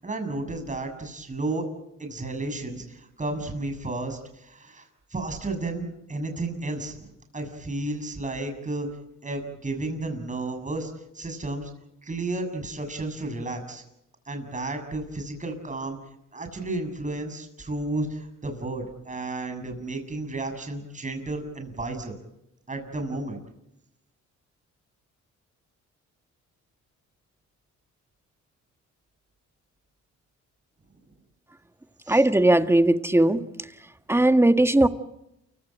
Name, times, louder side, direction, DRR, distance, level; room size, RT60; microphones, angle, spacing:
voice 1, 0.0-1.7 2.0-8.9 9.2-11.7 12.0-13.8 14.3-16.0 16.3-22.1 22.7-23.4 32.1-32.2, right 2 dB, 25° right, 6 dB, 7.0 m, -32 dB
voice 2, 32.1-33.4 34.1-34.9, right 1 dB, 10° right, 8 dB, 1.7 m, -18 dB
28.5 x 16.5 x 9.0 m, 0.84 s
cardioid pair, 90°, 30 cm